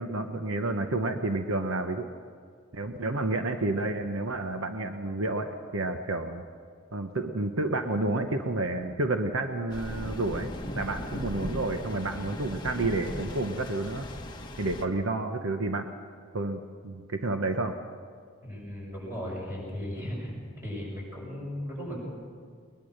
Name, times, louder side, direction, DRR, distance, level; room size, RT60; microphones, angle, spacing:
voice 1, 0.0-2.1 2.7-6.4 6.9-14.0 14.6-15.9 16.3-17.8, right 2 dB, 65° right, 6 dB, 1.0 m, -30 dB
sound 1, 9.7-14.8, left 1 dB, 20° left, 1.3 m, -37 dB
voice 2, 18.4-22.1, equal, 10° right, -3 dB, 6.9 m, -36 dB
21.5 x 20.5 x 6.6 m, 2.1 s
head